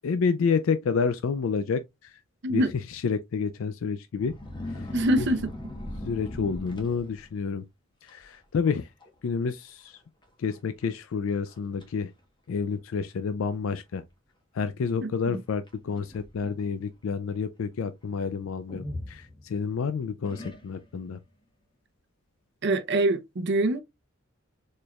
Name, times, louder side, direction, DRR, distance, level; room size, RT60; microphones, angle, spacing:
voice 1, 0.0-2.2 2.5-2.6 2.9-4.3 4.7-4.9 6.1-7.6 8.0-8.9 9.2-10.0 10.4-12.1 12.5-14.0 14.5-21.2, left 5 dB, 75° left, 0.4 m, -29 dB
sound 1, 4.2-7.5 8.1-8.3 8.7-9.1 9.3-9.4 10.2-10.3 10.8-10.9 11.5-11.9 12.7-12.8 15.7-16.7 18.7-19.7 20.2-21.0, left 1 dB, 25° left, 1.1 m, -39 dB
voice 2, 4.9-5.5 15.0-15.4 22.6-23.8, right 1 dB, 60° right, 0.7 m, -25 dB
4.3 x 3.2 x 2.3 m
head